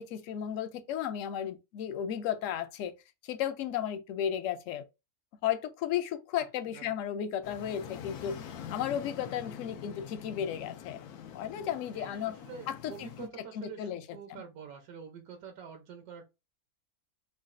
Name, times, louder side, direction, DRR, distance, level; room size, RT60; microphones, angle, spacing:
voice 1, 0.0-2.9 3.2-4.8 5.4-8.3 8.7-11.0 11.3-12.4 12.7-13.3 13.5-14.0 14.3-14.4, left 9 dB, 70° left, 0.8 m, -34 dB
sound 1, 7.4-13.3, left 9 dB, 85° left, 1.1 m, -45 dB
voice 2, 11.9-16.2, right 7 dB, 80° right, 1.2 m, -47 dB
4.9 x 2.3 x 2.5 m
omnidirectional pair, 1.6 m